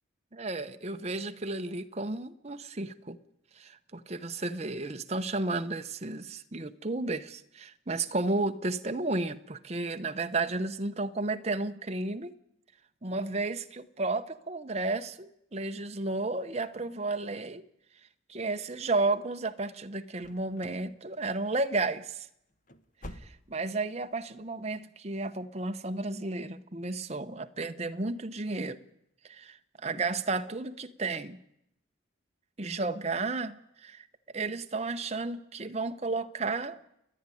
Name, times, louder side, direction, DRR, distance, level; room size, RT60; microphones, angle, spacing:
voice 1, 0.3-3.2 3.5-12.3 13.0-17.6 18.3-22.3 23.1-28.8 29.2-31.4 32.6-34.1 34.3-36.8, right 3 dB, 35° right, 8 dB, 0.9 m, -33 dB
sound 1, 20.2-20.9 21.2-21.6 21.9-22.1 22.5-23.8 24.1-24.2 24.7-24.8, left 1 dB, 40° left, 1.1 m, -48 dB
30.0 x 10.5 x 9.9 m, 0.80 s
head